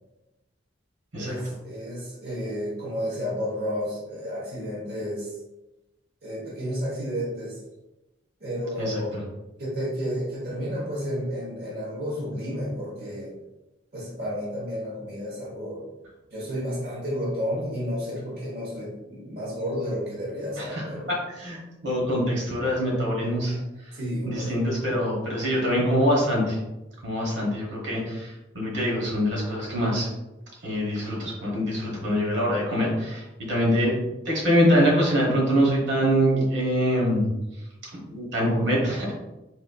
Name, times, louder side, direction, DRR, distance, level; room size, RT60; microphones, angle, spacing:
voice 1, 1.2-5.3 6.2-7.6 8.4-9.2 9.6-13.4 13.9-15.9 16.3-21.1 23.9-24.5, equal, 55° right, -5 dB, 1.0 m, -31 dB
voice 2, 21.1-23.6 24.2-26.6 27.0-30.1 30.6-37.2 38.1-39.1, equal, 80° right, -3 dB, 1.1 m, -24 dB
4.0 x 2.5 x 2.3 m, 0.98 s
head